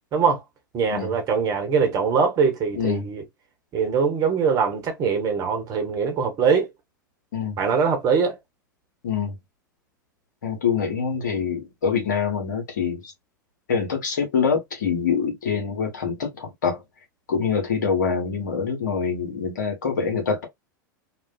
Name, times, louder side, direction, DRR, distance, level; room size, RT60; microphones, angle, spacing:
voice 1, 0.1-0.4 0.7-3.2 3.7-6.7 7.6-8.4, right 6 dB, 35° right, 1.0 m, -22 dB
voice 2, 10.4-13.0 13.7-16.8 17.3-20.4, left 6 dB, 65° left, 1.0 m, -25 dB
2.5 x 2.2 x 2.3 m
figure-of-eight pair, 85°, 11 cm